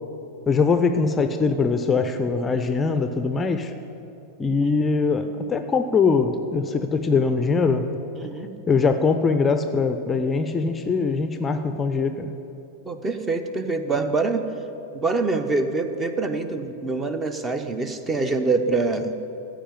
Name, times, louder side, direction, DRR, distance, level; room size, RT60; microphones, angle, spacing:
voice 1, 0.5-3.7 4.4-7.9 8.4-12.3, left 4 dB, 20° left, 8 dB, 0.5 m, -22 dB
voice 2, 8.2-8.5 12.9-14.4 14.9-19.1, right 3 dB, 15° right, 8 dB, 0.8 m, -25 dB
14.5 x 5.0 x 9.3 m, 2.9 s
figure-of-eight pair, 90°, 0 cm